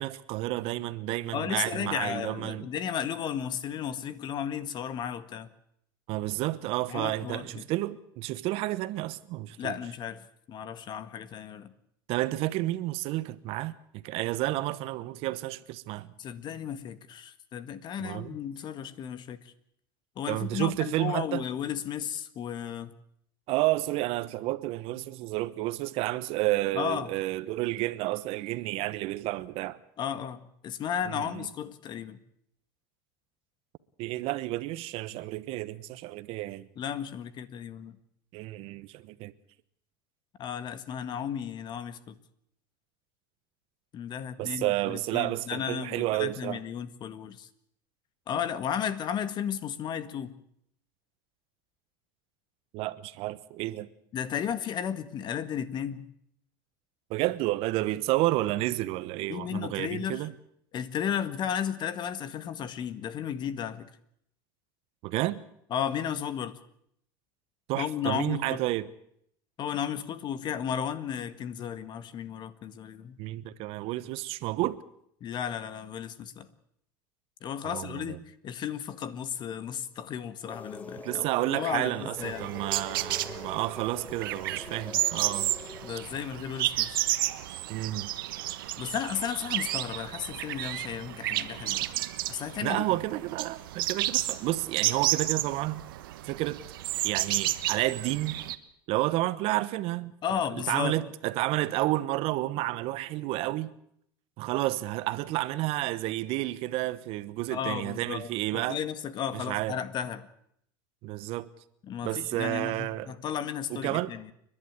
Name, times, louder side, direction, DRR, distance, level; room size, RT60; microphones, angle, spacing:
voice 1, 0.0-2.7 6.1-9.8 12.1-16.1 18.0-18.4 20.3-21.4 23.5-29.8 31.1-31.5 34.0-36.7 38.3-39.3 44.4-46.6 52.7-53.9 57.1-60.3 65.0-65.4 67.7-68.9 73.2-74.8 77.6-78.2 81.0-85.5 87.7-88.1 92.6-95.8 96.2-96.6 97.0-98.4 98.9-100.1 100.5-103.7 104.4-108.8 109.3-109.8 111.0-111.5 112.0-113.1 113.7-114.1, right 17 dB, 55° right, 1.1 m, -31 dB
voice 2, 1.3-5.5 6.9-7.6 9.6-11.7 16.2-19.5 20.1-22.9 26.7-27.1 30.0-32.2 36.7-37.9 40.4-42.2 43.9-47.5 48.3-50.3 54.1-56.0 59.3-60.2 60.7-63.9 65.7-66.6 67.8-68.6 69.6-73.2 75.2-76.5 77.4-81.2 81.5-82.5 85.8-87.0 88.8-91.9 92.3-92.8 100.2-101.0 107.5-110.3 111.9-114.3, left 8 dB, 40° left, 1.8 m, -34 dB
sound 1, 80.5-86.0, left 3 dB, 15° left, 1.4 m, -44 dB
sound 2, 82.2-98.6, right 15 dB, 80° right, 1.3 m, -32 dB
29.5 x 11.5 x 9.6 m
supercardioid pair, 110°, 11 cm